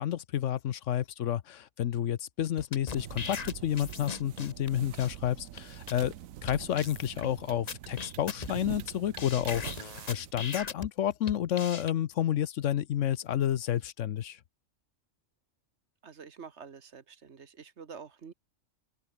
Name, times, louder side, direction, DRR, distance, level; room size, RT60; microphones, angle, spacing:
voice 1, 0.0-6.1 6.4-14.4, left 11 dB, 70° left, 1.0 m, -30 dB
sound 1, 2.6-4.7 5.0-5.1 5.6-5.7 5.9-6.1 6.5-6.6 6.8-7.3 7.7-8.9 9.2-10.9 11.3-11.9, left 5 dB, 35° left, 1.0 m, -39 dB
sound 2, 3.0-10.3, right 12 dB, 80° right, 1.1 m, -44 dB
voice 2, 16.0-18.3, right 6 dB, 60° right, 1.5 m, -47 dB
open air
omnidirectional pair, 1.4 m